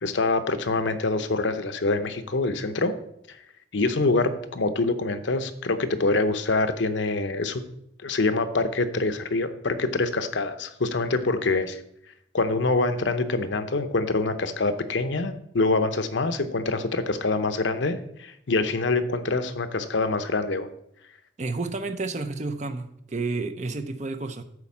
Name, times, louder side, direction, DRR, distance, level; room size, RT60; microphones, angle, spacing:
voice 1, 0.0-3.0 3.7-7.6 8.0-11.8 12.3-20.7, left 3 dB, 75° left, 10 dB, 0.8 m, -25 dB
voice 2, 21.4-24.4, right 3 dB, 40° right, 9 dB, 0.6 m, -30 dB
9.7 x 4.3 x 7.2 m, 0.75 s
head